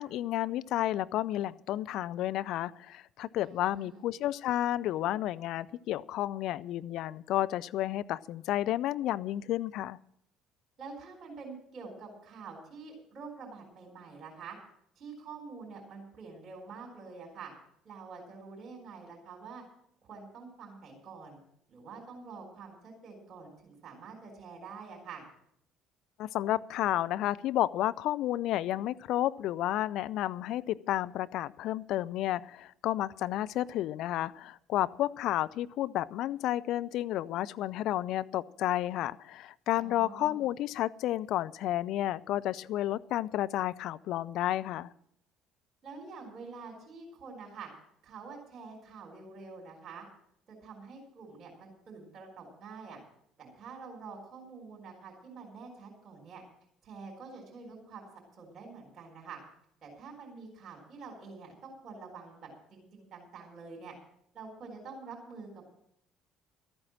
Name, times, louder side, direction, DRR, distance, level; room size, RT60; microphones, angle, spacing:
voice 1, 0.0-10.0 26.2-44.9, left 13 dB, 55° left, 16 dB, 0.4 m, -31 dB
voice 2, 3.4-4.0 10.8-14.6 15.0-17.5 17.8-19.6 20.0-21.4 21.7-25.2 39.8-40.5 45.8-47.7 48.0-50.0 50.5-53.0 53.4-56.4 56.8-58.1 58.4-59.4 59.8-63.9 64.3-65.6, right 4 dB, 45° right, 0 dB, 4.3 m, -47 dB
13.5 x 8.8 x 7.4 m, 0.72 s
figure-of-eight pair, 55°, 0 cm